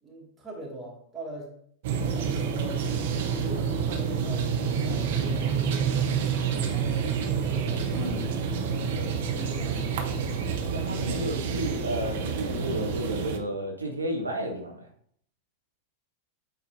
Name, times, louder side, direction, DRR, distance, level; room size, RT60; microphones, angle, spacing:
voice 1, 0.0-1.5 1.9-2.9 3.4-8.5 9.3-9.9, right 1 dB, 15° right, -3 dB, 2.2 m, -42 dB
sound 1, 1.8-13.4, right 6 dB, 55° right, 0.8 m, -28 dB
voice 2, 10.7-14.9, equal, 80° right, 2 dB, 0.9 m, -32 dB
8.6 x 4.1 x 2.7 m, 0.64 s
figure-of-eight pair, 90°, 0 cm